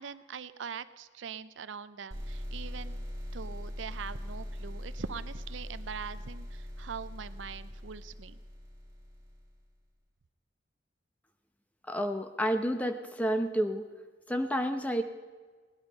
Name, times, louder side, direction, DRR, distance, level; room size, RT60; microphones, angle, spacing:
voice 1, 0.0-3.0 3.3-8.4, right 6 dB, 80° right, 14 dB, 0.5 m, -42 dB
sound 1, 2.1-9.6, equal, 20° right, 3.0 m, -41 dB
voice 2, 11.9-13.8 14.3-15.0, equal, 10° left, 7 dB, 0.8 m, -30 dB
18.5 x 10.5 x 5.3 m, 1.5 s
head